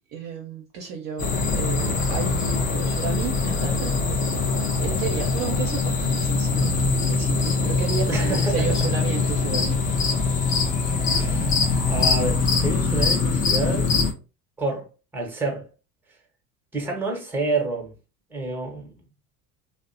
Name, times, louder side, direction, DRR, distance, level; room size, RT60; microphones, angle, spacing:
voice 1, 0.1-9.8, right 7 dB, 45° right, 0.6 m, -33 dB
sound 1, 1.2-14.1, left 4 dB, 20° left, 0.3 m, -23 dB
voice 2, 8.1-9.0 11.0-13.9 14.6-15.7 16.7-17.9 18.3-18.9, right 3 dB, 5° right, 0.8 m, -29 dB
2.7 x 2.1 x 2.5 m
hypercardioid pair, 75°, 46 cm